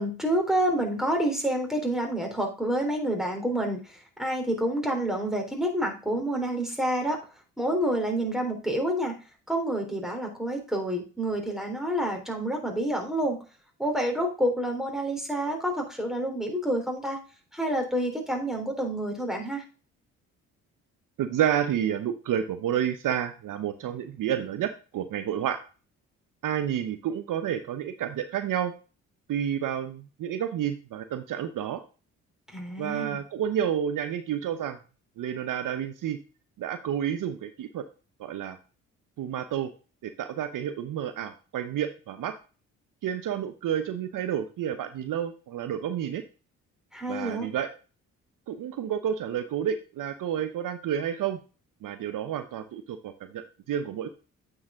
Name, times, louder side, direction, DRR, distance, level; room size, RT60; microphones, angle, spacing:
voice 1, 0.0-3.8 4.2-7.2 7.6-9.1 9.5-13.4 13.8-17.2 17.5-19.6 32.5-33.2 46.9-47.5, right 1 dB, ahead, 2 dB, 3.5 m, -28 dB
voice 2, 21.2-25.6 26.4-28.7 29.3-31.8 32.8-34.8 35.2-36.2 36.6-37.8 38.2-38.6 39.2-39.7 40.0-42.4 43.0-46.2 47.1-47.7 48.5-51.4 51.8-54.1, right 9 dB, 60° right, 10 dB, 0.8 m, -30 dB
8.5 x 5.0 x 3.6 m, 0.34 s
supercardioid pair, 55°, 36 cm